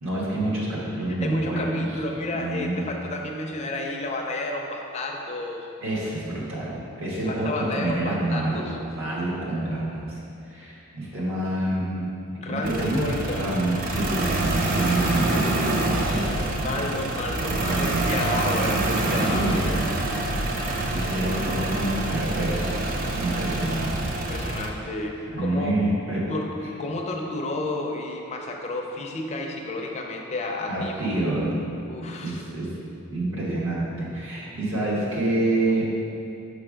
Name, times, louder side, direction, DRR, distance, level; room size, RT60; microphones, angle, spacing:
voice 1, 0.0-1.8 2.3-2.8 5.8-10.2 10.5-12.2 12.4-13.1 13.3-17.0 17.5-18.0 19.0-19.8 20.9-22.7 23.1-24.1 25.3-26.3 30.7-31.6 32.2-32.7 33.1-35.9, right 2 dB, 60° right, -5 dB, 1.3 m, -27 dB
voice 2, 1.2-5.7 7.3-8.9 12.4-13.5 16.6-19.5 24.1-25.7 26.3-31.1 31.9-32.4, left 2 dB, 30° left, 1 dB, 0.5 m, -31 dB
sound 1, 12.6-24.7, right 2 dB, 40° right, 0.5 m, -26 dB
6.0 x 3.4 x 5.1 m, 2.7 s
head